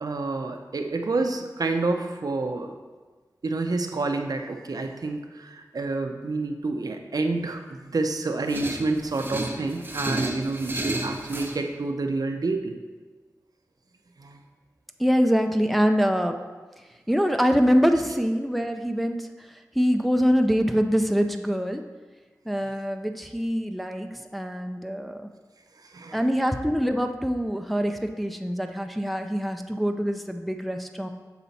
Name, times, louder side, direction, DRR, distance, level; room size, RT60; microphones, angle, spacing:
voice 1, 0.0-2.7 3.4-12.8 14.2-14.4 25.8-26.2, right 3 dB, 75° right, 5 dB, 0.6 m, -28 dB
sound 1, 8.5-11.6, right 1 dB, 30° right, 0.7 m, -31 dB
voice 2, 15.0-16.4 17.1-21.8 22.5-25.3 26.1-31.1, equal, ahead, 5 dB, 0.4 m, -24 dB
7.0 x 4.2 x 4.1 m, 1.3 s
wide cardioid pair, 60°, 7 cm